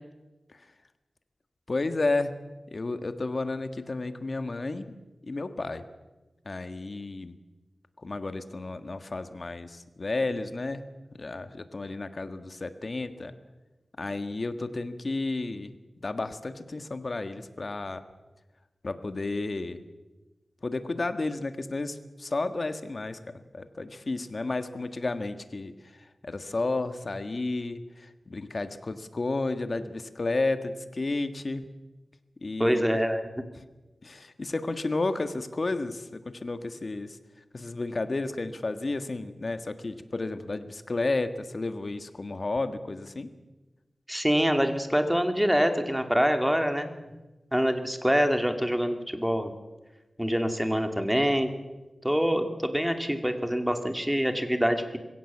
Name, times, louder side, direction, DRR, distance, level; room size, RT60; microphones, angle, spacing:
voice 1, 1.7-2.3 2.7-5.0 5.2-5.8 6.4-7.3 8.0-10.8 11.1-13.3 14.0-18.0 18.8-19.8 20.6-31.7 32.4-33.0 33.5-33.6 34.0-37.2 37.5-43.3, left 2 dB, 55° left, 9 dB, 1.5 m, -32 dB
voice 2, 32.6-33.2 44.1-47.0 47.5-49.5 50.2-51.5 52.0-55.0, equal, 5° right, 6 dB, 2.3 m, -25 dB
22.0 x 16.5 x 7.4 m, 1.1 s
wide cardioid pair, 65°, 0 cm